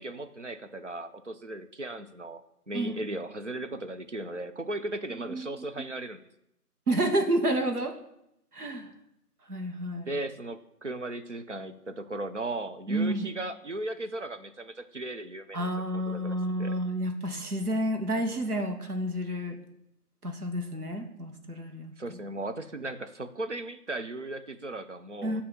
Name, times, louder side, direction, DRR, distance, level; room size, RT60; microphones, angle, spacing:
voice 1, 0.0-2.4 2.7-6.2 10.1-16.8 22.0-25.4, right 2 dB, 50° right, 9 dB, 0.5 m, -37 dB
voice 2, 6.9-7.9 8.5-8.9 9.5-10.1 12.9-13.3 15.5-19.6 20.2-22.2 25.2-25.4, right 1 dB, 70° right, 5 dB, 1.1 m, -30 dB
7.5 x 2.8 x 5.8 m, 0.82 s
figure-of-eight pair, 175°, 47 cm